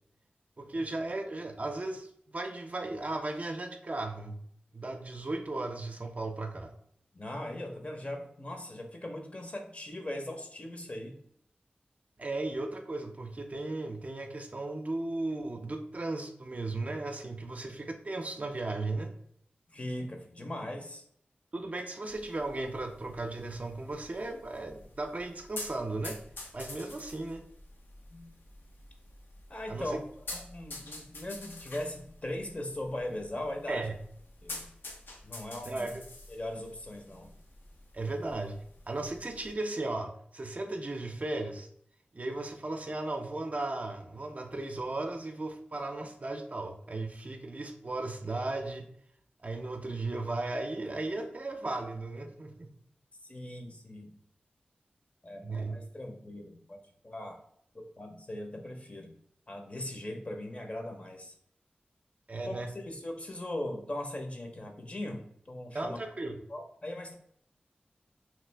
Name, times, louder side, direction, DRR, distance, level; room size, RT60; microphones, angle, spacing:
voice 1, 0.6-4.4 4.7-6.7 12.2-19.1 21.5-26.2 26.5-27.4 29.7-29.9 33.7-34.0 35.7-36.0 37.9-38.6 38.9-41.7 42.1-48.8 49.4-52.7 55.4-55.8 62.3-62.7 65.7-66.4, right 2 dB, 45° right, 4 dB, 0.4 m, -36 dB
voice 2, 7.1-11.2 19.7-21.0 28.1-28.3 29.5-30.0 30.3-33.9 34.4-34.7 35.2-35.9 36.3-37.3 53.2-54.1 55.2-56.8 57.0-57.4 57.7-59.1 59.5-61.3 62.4-66.0 66.5-67.1, left 1 dB, 40° left, 3 dB, 0.7 m, -39 dB
sound 1, 22.1-39.5, left 2 dB, 80° left, 0.6 m, -48 dB
3.0 x 2.4 x 3.3 m, 0.67 s
wide cardioid pair, 55°, 3 cm